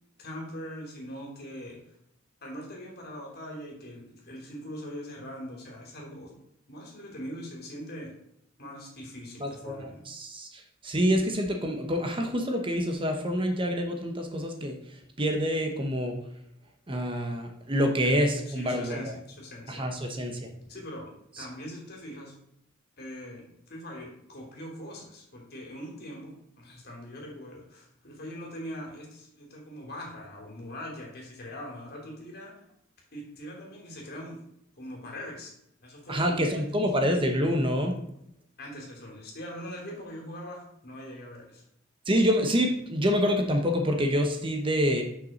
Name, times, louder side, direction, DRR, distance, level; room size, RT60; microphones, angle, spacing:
voice 1, 0.2-1.8 2.4-6.4 6.7-8.1 8.6-10.0 18.0-18.1 18.5-20.3 20.7-22.3 23.0-32.5 33.1-34.4 34.8-35.5 35.8-36.7 38.1-38.2 38.6-41.6, equal, 50° left, -1 dB, 3.0 m, -42 dB
voice 2, 9.4-14.8 15.2-16.2 16.9-19.1 19.7-20.5 21.4-21.5 36.1-37.9 42.1-45.0, equal, 25° right, 3 dB, 1.1 m, -27 dB
6.8 x 6.0 x 6.5 m, 0.75 s
head